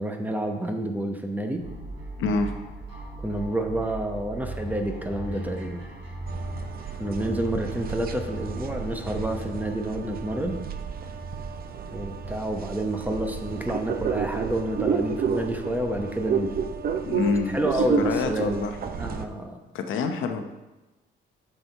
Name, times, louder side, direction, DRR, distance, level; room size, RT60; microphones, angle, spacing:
voice 1, 0.0-1.6 3.2-5.8 7.0-10.6 11.9-16.5 17.5-18.7 19.0-19.6, right 1 dB, 10° right, 4 dB, 1.0 m, -29 dB
sound 1, 1.6-19.1, right 1 dB, 65° right, 2.7 m, -40 dB
voice 2, 2.2-2.5 17.0-18.8 19.7-20.5, left 4 dB, 80° left, 6 dB, 0.8 m, -27 dB
sound 2, 6.3-19.3, right 6 dB, 50° right, 0.6 m, -31 dB
6.4 x 6.0 x 4.6 m, 1.1 s
cardioid pair, 90°, 20 cm